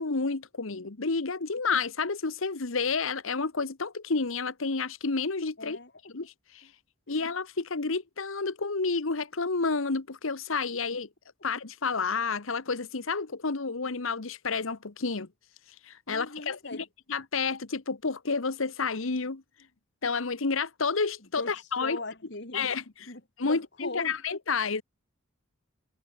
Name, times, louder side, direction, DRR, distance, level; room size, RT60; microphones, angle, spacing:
voice 1, 0.0-5.8 6.1-6.7 7.1-11.1 11.4-15.3 15.8-19.4 20.0-22.0 22.5-22.8 23.4-24.8, left 4 dB, 75° left, 1.2 m, -30 dB
voice 2, 5.6-6.1 7.1-7.3 16.1-16.8 21.4-21.5 21.8-22.7 23.1-24.2, left 2 dB, 55° left, 3.1 m, -40 dB
head